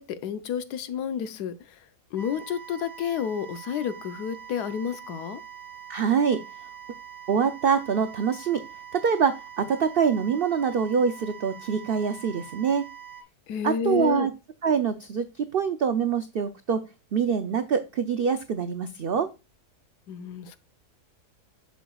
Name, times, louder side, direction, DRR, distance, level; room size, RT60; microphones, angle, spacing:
voice 1, 0.0-1.8 2.1-5.4 13.5-14.3 20.1-20.6, left 8 dB, 80° left, 1.3 m, -30 dB
sound 1, 2.2-13.2, right 8 dB, 15° right, 0.7 m, -44 dB
voice 2, 5.9-6.4 7.3-8.6 8.9-12.8 13.6-14.3 14.6-16.8 17.1-19.3, right 6 dB, 80° right, 0.5 m, -25 dB
6.9 x 6.3 x 2.3 m
omnidirectional pair, 1.7 m